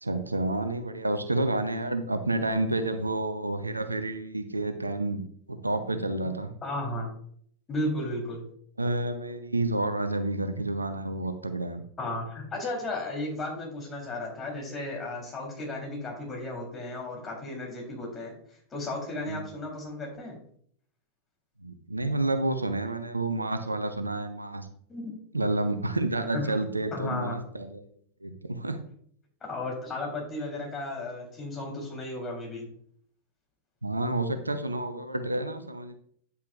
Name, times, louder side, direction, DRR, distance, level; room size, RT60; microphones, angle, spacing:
voice 1, 0.0-5.2 5.5-6.5 8.8-11.8 19.3-19.4 21.6-24.7 25.3-27.8 28.2-28.8 33.8-35.9, right 2 dB, 80° right, 9 dB, 0.7 m, -29 dB
voice 2, 6.6-7.1 7.7-8.4 12.0-18.3 18.7-20.4 24.9-25.1 26.3-26.6 26.9-27.4 29.4-32.7, left 2 dB, 20° left, -1 dB, 3.7 m, -34 dB
9.3 x 8.4 x 2.5 m, 0.62 s
figure-of-eight pair, 90°, 0 cm